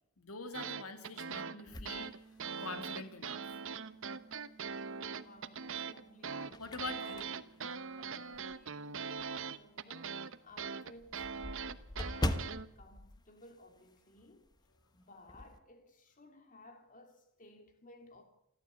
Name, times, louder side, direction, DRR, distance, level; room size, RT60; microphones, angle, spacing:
voice 1, 0.2-2.1 2.6-3.6 6.6-7.3, left 4 dB, 80° left, 2.4 m, -44 dB
sound 1, 0.5-12.7, right 6 dB, 60° right, 1.0 m, -41 dB
sound 2, 1.3-12.0, right 4 dB, 5° right, 2.4 m, -62 dB
sound 3, 1.7-3.0 3.5-3.6 5.1-5.6 6.1-8.7 9.2-9.3 9.7-9.8 10.1-10.2 10.4-14.2 14.4-14.7 15.0-15.6, left 1 dB, 20° left, 1.1 m, -41 dB
voice 2, 5.1-6.6 7.0-7.2 8.0-11.7 12.0-14.5 14.9-18.2, left 2 dB, 35° left, 2.9 m, -58 dB
28.0 x 12.0 x 8.3 m
head